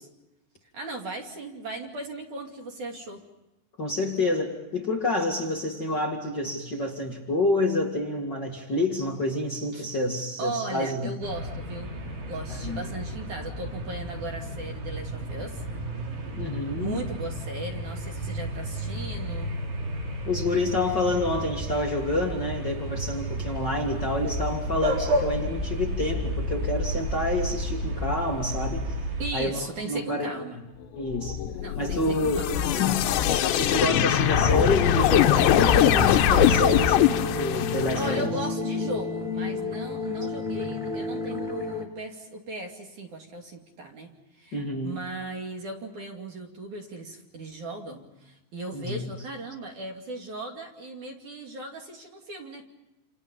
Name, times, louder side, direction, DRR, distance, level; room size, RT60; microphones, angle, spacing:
voice 1, 0.7-3.2 9.7-9.9 10.4-11.9 12.2-15.6 16.8-19.5 29.2-30.6 31.6-32.9 38.0-52.6, right 2 dB, 45° right, 2 dB, 3.3 m, -37 dB
voice 2, 3.8-11.1 12.5-12.9 16.4-17.0 20.3-28.9 29.3-30.4 30.9-31.4 31.8-33.1 33.6-38.3 44.5-45.0 48.7-49.1, left 2 dB, 55° left, 0 dB, 1.1 m, -28 dB
sound 1, 11.2-29.3, right 1 dB, 60° right, 7.3 m, -32 dB
sound 2, 31.1-38.2, left 10 dB, 75° left, 3.0 m, -22 dB
sound 3, 34.4-41.8, left 4 dB, 10° right, 3.0 m, -31 dB
29.5 x 29.0 x 5.4 m, 0.99 s
omnidirectional pair, 5.9 m